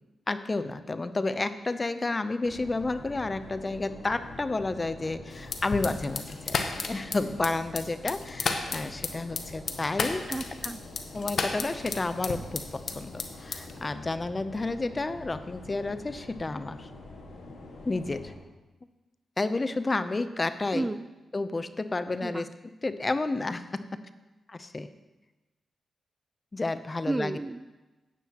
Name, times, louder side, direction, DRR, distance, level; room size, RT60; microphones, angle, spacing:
voice 1, 0.3-6.6 6.9-10.3 11.1-16.9 17.8-18.3 19.4-20.9 21.3-22.5 22.8-24.0 24.5-24.9 26.5-27.4, left 3 dB, 35° left, 12 dB, 0.6 m, -31 dB
sound 1, 2.4-18.4, left 2 dB, 90° left, 1.6 m, -45 dB
sound 2, 5.4-12.9 13.2-13.8, left 4 dB, 65° left, 0.9 m, -32 dB
voice 2, 10.3-10.8 20.7-21.1 22.2-22.5 27.1-27.8, right 2 dB, 25° right, 14 dB, 0.4 m, -32 dB
13.0 x 9.1 x 3.0 m, 1.1 s
cardioid pair, 55°, 0 cm